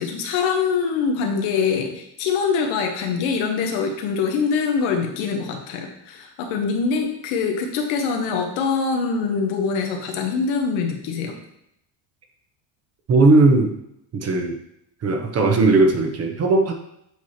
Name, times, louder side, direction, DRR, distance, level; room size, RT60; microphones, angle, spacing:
voice 1, 0.0-11.3, left 5 dB, 75° left, 3 dB, 1.3 m, -24 dB
voice 2, 13.1-13.7 14.1-14.6 15.0-16.7, right 3 dB, 30° right, 4 dB, 1.0 m, -17 dB
8.0 x 3.1 x 4.3 m, 0.78 s
cardioid pair, 125°, 48 cm